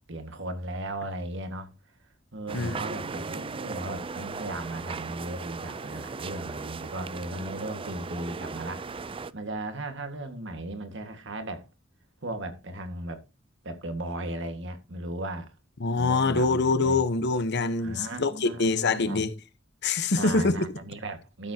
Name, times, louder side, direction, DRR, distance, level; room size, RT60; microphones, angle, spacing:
voice 1, 0.0-1.7 2.3-8.9 9.3-11.7 12.2-13.2 13.6-15.5 16.0-17.0 17.8-19.2 20.2-21.5, right 1 dB, 65° right, 1.9 m, -36 dB
sound 1, 2.5-9.3, right 4 dB, 25° right, 0.5 m, -37 dB
voice 2, 15.8-19.3 19.8-20.5, left 3 dB, 60° left, 1.1 m, -25 dB
13.0 x 7.2 x 2.9 m
head